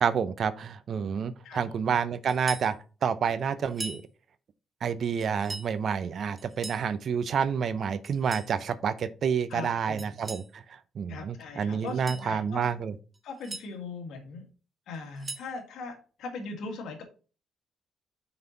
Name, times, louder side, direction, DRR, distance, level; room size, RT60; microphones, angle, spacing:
voice 1, 0.0-2.8 3.0-4.0 4.8-12.9, right 7 dB, 55° right, 0.6 m, -29 dB
voice 2, 1.4-2.0 9.5-10.2 11.1-12.7 13.2-14.4 14.9-17.0, left 3 dB, 80° left, 1.9 m, -40 dB
sound 1, 2.3-2.7 3.7-4.0 5.2-5.7 6.4-6.9 8.0-8.5 10.0-10.5 11.8-12.3 13.1-13.7 14.9-15.5, right 3 dB, 20° right, 1.1 m, -40 dB
5.9 x 5.5 x 3.9 m
cardioid pair, 90°, 0 cm